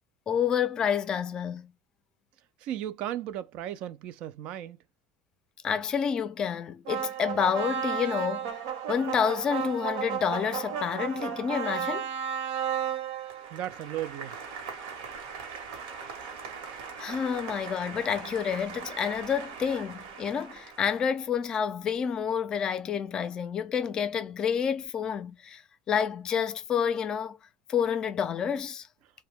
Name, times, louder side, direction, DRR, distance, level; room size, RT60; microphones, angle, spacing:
voice 1, 0.3-1.7 5.6-8.5 8.9-12.1 17.0-25.6 25.9-27.4 27.7-28.9, left 7 dB, 30° left, 0.4 m, -29 dB
voice 2, 2.6-4.8 13.5-14.4, right 12 dB, 55° right, 0.4 m, -35 dB
sound 1, 6.9-21.0, right 8 dB, 80° right, 1.0 m, -35 dB
2.7 x 2.2 x 3.3 m
cardioid pair, 135°, 2 cm